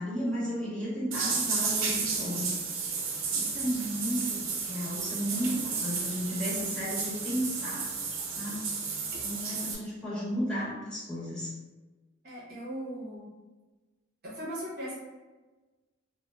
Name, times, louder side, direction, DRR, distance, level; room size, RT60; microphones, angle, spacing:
voice 1, 0.0-2.5 3.3-7.9 8.4-8.8 9.2-11.5, equal, 5° left, -10 dB, 1.0 m, -34 dB
sound 1, 1.1-9.8, right 4 dB, 85° right, 0.5 m, -32 dB
voice 2, 12.2-13.3 14.2-15.0, equal, 50° right, -6 dB, 0.7 m, -38 dB
3.3 x 2.0 x 2.2 m, 1.2 s
head